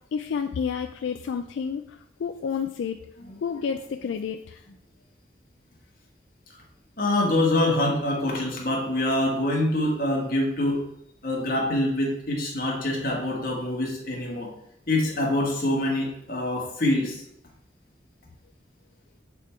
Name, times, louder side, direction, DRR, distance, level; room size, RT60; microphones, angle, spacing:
voice 1, 0.1-3.0 3.4-4.6, left 6 dB, 80° left, 6 dB, 0.3 m, -30 dB
voice 2, 7.0-10.8 11.2-14.5 14.9-17.2, left 1 dB, 50° left, -2 dB, 1.5 m, -25 dB
6.8 x 3.6 x 4.3 m, 0.76 s
head